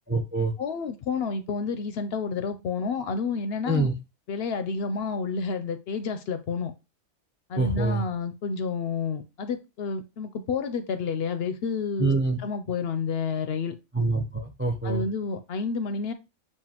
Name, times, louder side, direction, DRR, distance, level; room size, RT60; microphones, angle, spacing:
voice 1, 0.1-0.5 3.7-3.9 7.6-8.0 12.0-12.4 13.9-15.0, right 2 dB, 15° right, 4 dB, 0.4 m, -25 dB
voice 2, 0.6-3.9 4.3-6.7 7.5-12.1 12.4-13.8 14.8-16.1, left 5 dB, 65° left, 10 dB, 0.7 m, -30 dB
7.3 x 2.5 x 2.8 m, 0.27 s
omnidirectional pair, 1.2 m